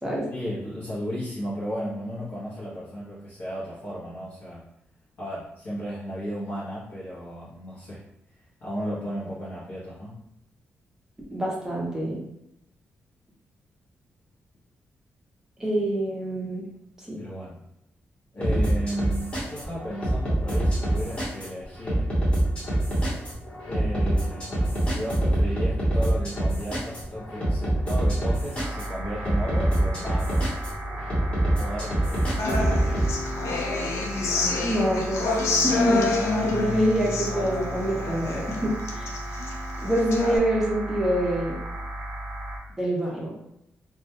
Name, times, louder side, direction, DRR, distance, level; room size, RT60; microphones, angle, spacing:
voice 1, 0.3-4.6 5.2-8.0 8.6-10.2 17.2-17.6 18.3-22.1 23.7-30.4 31.4-32.7, equal, 50° left, -9 dB, 0.7 m, -34 dB
voice 2, 11.3-12.2 15.6-16.7 17.1-17.2 34.6-35.3 35.6-39.1 39.8-41.6 42.8-43.3, right 1 dB, 10° right, -3 dB, 0.6 m, -26 dB
sound 1, 18.4-33.1, right 1 dB, 25° left, 0.9 m, -25 dB
sound 2, 28.5-42.6, right 1 dB, 85° right, 0.5 m, -35 dB
Human voice / Acoustic guitar, 32.4-40.4, left 3 dB, 85° left, 0.4 m, -28 dB
2.2 x 2.1 x 2.7 m, 0.82 s
wide cardioid pair, 155°, 5 cm